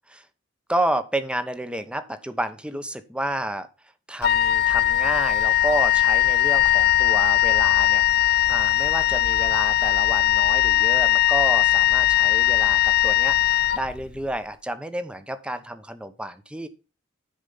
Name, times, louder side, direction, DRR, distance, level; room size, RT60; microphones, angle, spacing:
voice 1, 0.7-3.7 4.1-13.4 13.7-16.7, right 1 dB, 5° right, 11 dB, 0.9 m, -30 dB
Wind instrument woodwind instrument, 4.2-14.3, left 12 dB, 55° left, 0.5 m, -20 dB
10.0 x 4.9 x 5.5 m, 0.33 s
head